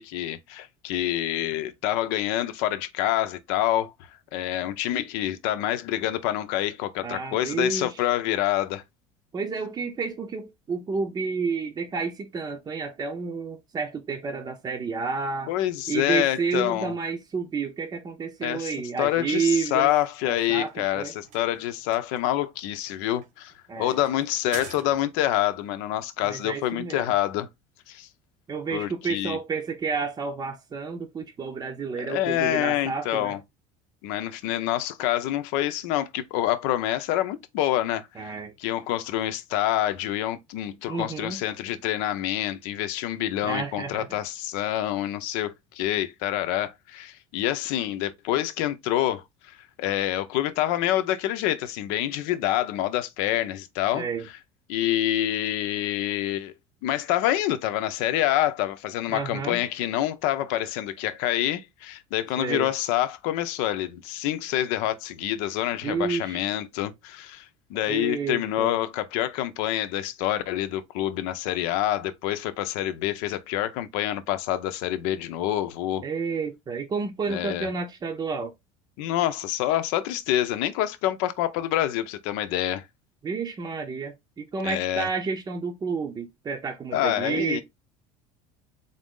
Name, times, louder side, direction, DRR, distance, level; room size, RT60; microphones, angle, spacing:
voice 1, 0.0-3.9 4.3-8.8 15.5-16.9 18.4-27.5 27.9-28.1 28.7-29.4 31.9-33.4 34.0-54.0 54.7-56.5 56.8-76.0 77.3-77.7 79.0-82.8 84.6-85.1 86.9-87.6, left 13 dB, 75° left, 0.7 m, -27 dB
voice 2, 7.0-8.1 9.3-15.5 15.9-19.9 20.3-21.1 23.7-24.0 26.2-27.1 28.5-33.4 38.2-38.5 40.9-41.4 43.4-44.2 53.9-54.3 59.1-59.6 62.4-62.7 65.8-66.4 67.9-68.7 76.0-78.5 83.2-87.6, right 5 dB, 25° right, 0.7 m, -30 dB
sound 1, 20.3-25.4, right 6 dB, 60° right, 1.0 m, -47 dB
4.0 x 2.6 x 3.6 m
supercardioid pair, 105°, 16 cm